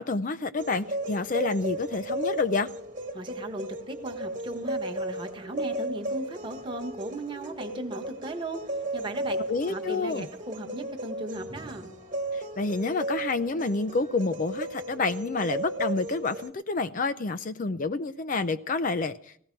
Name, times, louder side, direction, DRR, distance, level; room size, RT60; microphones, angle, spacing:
voice 1, 0.0-2.7 9.5-10.3 12.3-19.4, left 3 dB, 40° left, 0.5 m, -28 dB
sound 1, 0.6-16.5, right 1 dB, 40° right, 1.5 m, -35 dB
voice 2, 3.1-8.6 8.9-9.4 9.7-11.9, right 1 dB, 25° right, 1.2 m, -37 dB
17.0 x 14.0 x 4.5 m
head